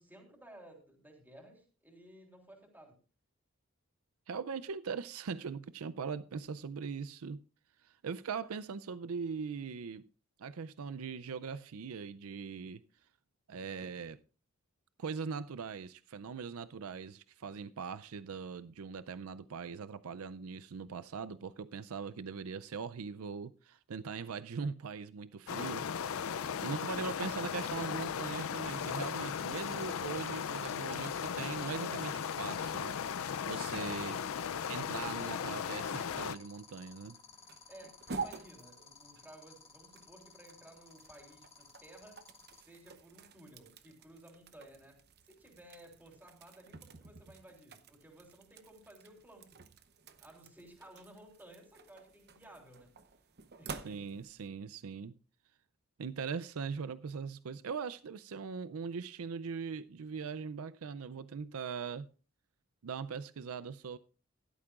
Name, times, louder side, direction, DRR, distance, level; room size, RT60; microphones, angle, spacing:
voice 1, 0.0-3.0 26.6-27.5 37.7-42.2 42.5-49.6 50.2-53.0 53.6-54.2, right 1 dB, 10° right, 3.5 m, -56 dB
voice 2, 4.3-7.4 7.8-10.1 10.4-12.8 13.5-14.2 15.0-25.9 26.3-34.2 34.7-37.2 53.8-55.2 56.0-62.1 62.8-64.0, right 5 dB, 75° right, 0.5 m, -41 dB
sound 1, 25.5-36.4, left 7 dB, 70° left, 0.4 m, -37 dB
sound 2, 28.6-42.6, left 5 dB, 30° left, 2.0 m, -56 dB
sound 3, 36.5-54.5, right 4 dB, 50° right, 0.9 m, -50 dB
16.0 x 12.5 x 2.4 m
head